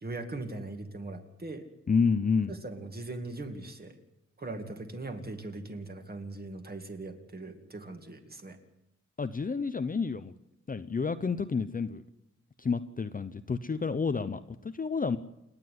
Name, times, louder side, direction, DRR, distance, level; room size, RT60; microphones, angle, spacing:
voice 1, 0.0-1.7 2.5-4.0 4.4-8.6, right 2 dB, 30° right, 5 dB, 2.3 m, -40 dB
voice 2, 1.9-2.5 9.2-10.3 10.7-12.0 12.6-15.2, left 5 dB, 30° left, 11 dB, 0.6 m, -29 dB
29.0 x 9.9 x 9.4 m, 0.87 s
wide cardioid pair, 160°, 29 cm